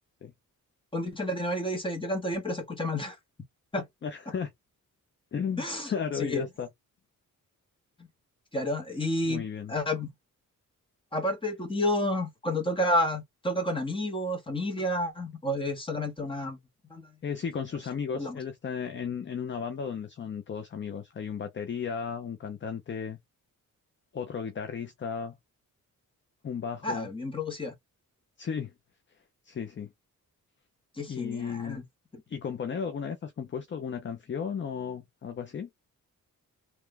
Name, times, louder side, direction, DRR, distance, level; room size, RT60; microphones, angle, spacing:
voice 1, 0.9-3.1 3.7-3.8 5.6-5.9 6.2-6.5 8.5-10.1 11.1-16.6 16.9-17.1 18.1-18.4 26.8-27.7 31.0-31.8, left 1 dB, 15° left, 1.4 m, -30 dB
voice 2, 4.0-4.5 5.3-6.7 9.2-9.7 17.2-23.2 24.1-25.4 26.4-27.1 28.4-28.7 29.4-29.9 31.1-31.8 32.3-35.7, left 7 dB, 35° left, 0.6 m, -34 dB
3.4 x 3.2 x 3.3 m
wide cardioid pair, 175°, 33 cm